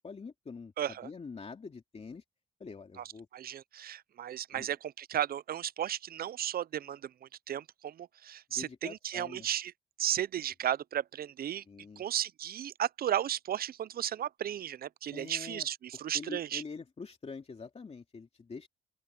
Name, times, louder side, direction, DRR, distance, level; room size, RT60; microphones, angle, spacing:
voice 1, 0.0-2.2 2.6-3.3 4.5-4.7 8.5-9.5 11.7-12.0 15.1-15.7 16.1-18.7, left 4 dB, 30° left, 2.7 m, -45 dB
voice 2, 0.8-1.1 3.0-3.1 3.3-9.7 10.0-11.6 12.0-16.6, right 10 dB, 50° right, 0.5 m, -34 dB
open air
cardioid pair, 90°, 20 cm